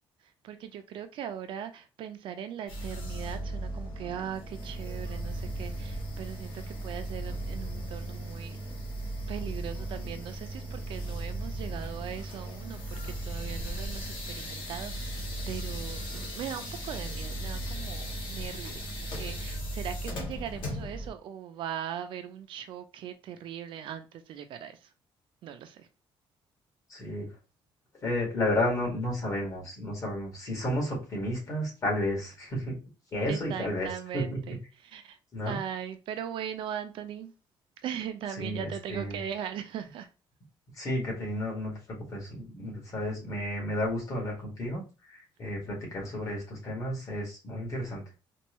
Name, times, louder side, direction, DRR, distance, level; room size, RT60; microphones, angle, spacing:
voice 1, 0.2-8.6 9.3-24.9 25.4-25.9 33.3-35.2 35.4-37.3 37.8-40.1, right 9 dB, 65° right, 0.6 m, -39 dB
sound 1, 2.7-21.1, right 1 dB, 70° left, 1.4 m, -36 dB
voice 2, 26.9-27.3 28.0-32.8 33.1-33.9 34.1-34.4 35.3-35.6 38.4-39.2 40.8-41.7 42.1-48.0, left 1 dB, 35° left, 2.1 m, -32 dB
4.5 x 2.5 x 3.0 m
cardioid pair, 155°, 9 cm